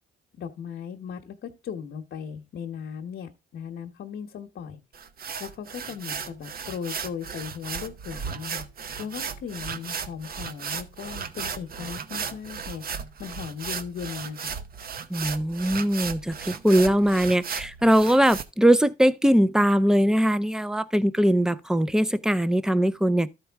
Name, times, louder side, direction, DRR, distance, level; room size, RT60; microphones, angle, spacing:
voice 1, 0.4-4.8 5.4-8.6 9.0-12.8 13.2-14.6, left 7 dB, 60° left, 1.0 m, -37 dB
sound 1, 4.9-18.4, right 6 dB, 50° right, 0.8 m, -35 dB
voice 2, 15.1-23.3, equal, 5° right, 0.5 m, -21 dB
13.0 x 4.5 x 3.4 m
cardioid pair, 90°, 20 cm